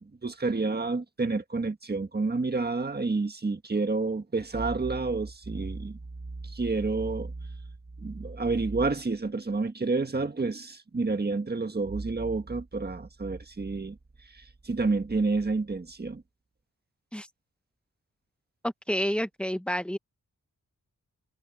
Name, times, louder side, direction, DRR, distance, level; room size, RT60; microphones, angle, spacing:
voice 1, 0.0-7.6 8.0-14.0 14.3-16.2, right 3 dB, 30° right, 1.6 m, -29 dB
voice 2, 18.6-20.0, equal, 5° left, 1.1 m, -29 dB
wide cardioid pair, 140°, 35 cm